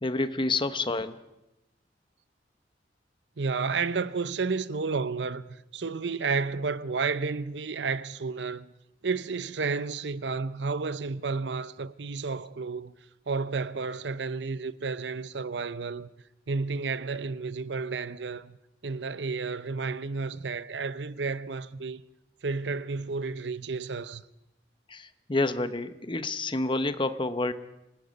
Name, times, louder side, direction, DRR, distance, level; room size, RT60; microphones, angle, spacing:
voice 1, 0.0-1.2 24.9-27.5, left 2 dB, 30° left, 0.9 m, -29 dB
voice 2, 3.4-8.7 9.0-12.9 13.3-16.1 16.5-18.6 18.8-22.0 22.4-24.2, right 4 dB, 75° right, 0.7 m, -31 dB
26.0 x 19.0 x 5.3 m
head